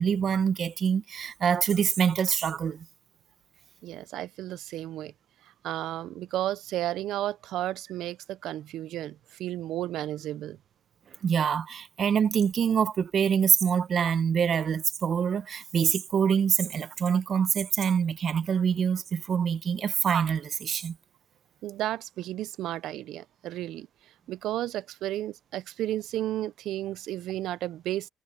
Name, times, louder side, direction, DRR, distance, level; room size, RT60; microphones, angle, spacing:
voice 1, 0.0-2.8 11.2-20.9, right 7 dB, 50° right, 1.3 m, -25 dB
voice 2, 3.8-5.1 5.4-10.6 21.6-23.9 24.3-28.1, right 14 dB, 75° right, 0.5 m, -33 dB
cardioid pair, 85°, 0 cm